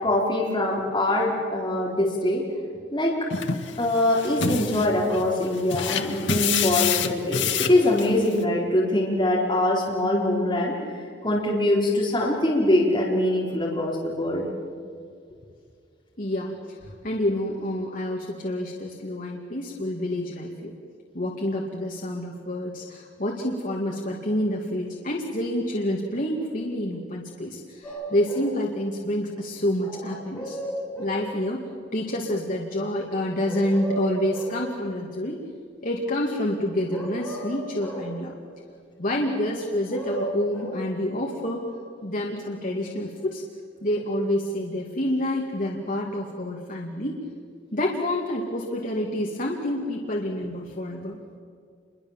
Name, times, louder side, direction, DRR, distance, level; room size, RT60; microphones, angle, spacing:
voice 1, 0.0-2.4 2.9-3.3 3.8-10.7 11.2-14.5, left 1 dB, 25° left, -4 dB, 4.1 m, -23 dB
sound 1, 3.3-8.4, left 6 dB, 80° left, 1.6 m, -28 dB
voice 2, 16.2-20.7 21.1-30.6 31.0-35.4 35.8-38.3 39.0-41.6 42.0-43.4 43.8-47.2 47.7-51.2, left 1 dB, 45° left, -1 dB, 2.4 m, -28 dB
sound 2, 27.8-28.5 29.8-31.2 33.4-34.6 36.9-38.1 39.6-40.8, right 1 dB, 5° left, 6.2 m, -34 dB
28.0 x 23.0 x 7.4 m, 2.3 s
head